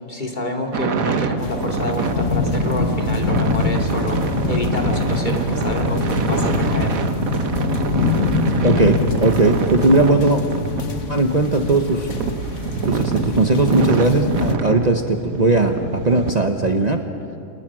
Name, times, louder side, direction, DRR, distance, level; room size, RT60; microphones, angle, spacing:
voice 1, 0.1-7.1, left 1 dB, 35° left, 1 dB, 2.8 m, -28 dB
sound 1, 0.7-16.3, right 5 dB, 85° right, 1.6 m, -26 dB
sound 2, 1.4-14.5, left 4 dB, 60° left, 1.9 m, -24 dB
voice 2, 8.5-10.4 11.1-12.1 12.8-17.0, right 2 dB, 30° right, 4 dB, 1.2 m, -18 dB
29.0 x 28.5 x 6.2 m, 2.6 s
omnidirectional pair, 1.4 m